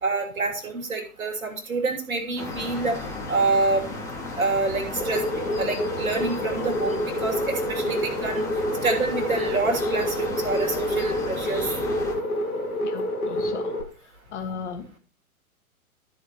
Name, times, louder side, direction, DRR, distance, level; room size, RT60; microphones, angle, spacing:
voice 1, 0.0-3.0 3.3-3.9 4.4-8.5 8.8-11.7, right 3 dB, 70° right, 4 dB, 2.8 m, -27 dB
sound 1, 2.4-12.2, left 2 dB, 5° left, 2.1 m, -34 dB
sound 2, 5.0-13.8, left 1 dB, 80° left, 2.2 m, -28 dB
voice 2, 12.8-13.7 14.3-15.0, left 6 dB, 50° left, 6 dB, 1.8 m, -36 dB
13.5 x 4.5 x 4.5 m, 0.37 s
figure-of-eight pair, 115°, 44 cm